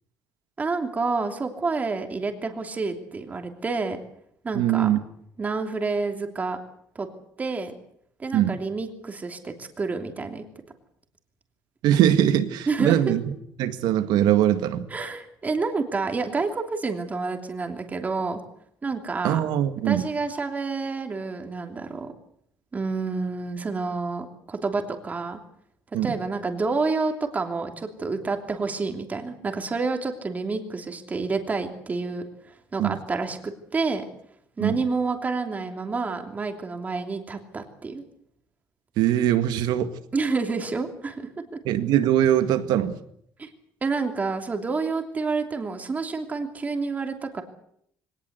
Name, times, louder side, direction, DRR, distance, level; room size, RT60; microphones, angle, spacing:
voice 1, 0.6-4.0 4.4-4.9 5.4-6.6 6.9-7.1 7.4-7.8 8.2-10.4 12.7-13.1 14.9-18.4 18.8-19.4 19.8-22.1 22.7-25.4 26.0-34.1 34.6-38.0 40.1-41.6 43.4-43.5 43.8-47.4, right 4 dB, 20° right, 5 dB, 3.0 m, -29 dB
voice 2, 4.5-5.0 8.3-8.5 11.8-13.2 13.6-14.9 19.2-20.0 25.9-26.2 32.8-33.0 34.6-34.8 39.0-39.9 41.7-43.0, right 11 dB, 80° right, 10 dB, 1.9 m, -21 dB
23.5 x 18.5 x 8.1 m, 0.69 s
cardioid pair, 155°, 7 cm